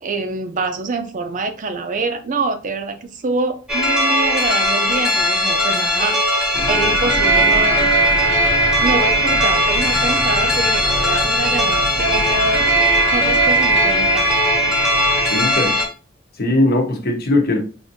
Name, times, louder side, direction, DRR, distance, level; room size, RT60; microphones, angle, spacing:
voice 1, 0.0-6.2 6.7-7.9 8.8-12.7 13.1-14.3, right 3 dB, 40° right, 7 dB, 0.5 m, -25 dB
sound 1, 3.7-15.9, equal, 5° right, 0.9 m, -18 dB
sound 2, 6.5-15.3, right 1 dB, 85° right, 0.9 m, -29 dB
voice 2, 15.3-15.8 16.4-17.6, left 1 dB, 50° left, 3 dB, 0.9 m, -19 dB
4.9 x 2.6 x 2.7 m, 0.37 s
head